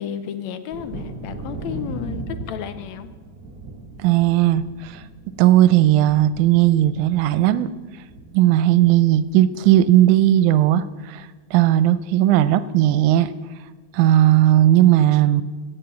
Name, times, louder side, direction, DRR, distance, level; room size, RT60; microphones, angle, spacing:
voice 1, 0.0-3.1, left 9 dB, 75° left, 11 dB, 1.8 m, -32 dB
Thunder, 0.7-10.1 10.4-11.1 11.5-11.6 12.0-12.2, right 2 dB, 50° right, 1.2 m, -38 dB
voice 2, 4.0-5.0 5.4-7.7 8.3-13.3 13.9-15.4, right 13 dB, 80° right, 15 dB, 2.0 m, -16 dB
17.0 x 6.9 x 7.1 m, 1.4 s
omnidirectional pair, 3.5 m